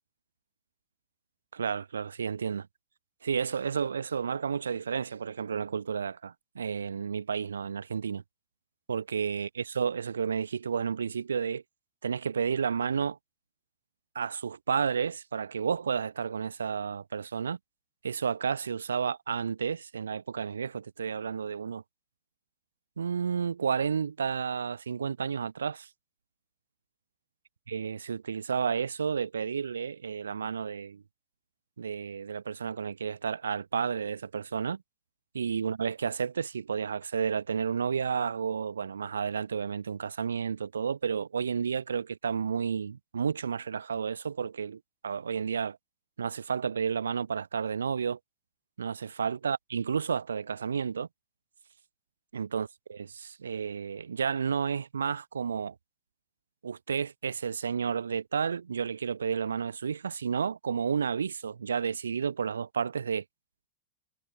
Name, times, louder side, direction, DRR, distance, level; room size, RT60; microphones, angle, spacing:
voice 1, 1.5-2.6 3.2-8.2 8.9-11.6 12.0-13.2 14.1-17.6 18.0-21.8 23.0-25.9 27.7-31.0 31.8-34.8 35.3-45.8 46.2-48.2 48.8-51.1 52.3-55.7 56.6-63.2, right 6 dB, 70° right, 0.9 m, -31 dB
figure-of-eight pair, 90°, 0 cm